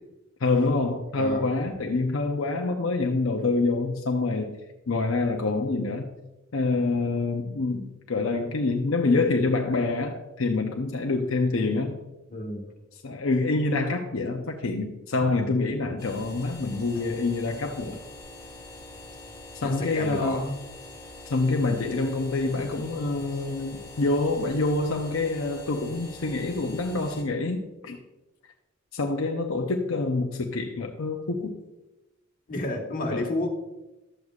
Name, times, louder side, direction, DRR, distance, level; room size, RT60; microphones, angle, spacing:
voice 1, 0.4-4.6 4.9-6.1 6.5-12.0 13.0-18.0 19.5-20.5 21.3-28.0 28.9-31.6 33.1-33.2, left 3 dB, 75° left, 2 dB, 0.7 m, -26 dB
voice 2, 1.1-1.5 12.3-12.7 16.9-17.1 19.6-20.5 32.5-33.5, left 1 dB, 45° left, 0 dB, 1.6 m, -31 dB
sound 1, 16.0-27.2, left 2 dB, 15° left, 3.4 m, -44 dB
12.0 x 8.0 x 2.4 m, 0.99 s
head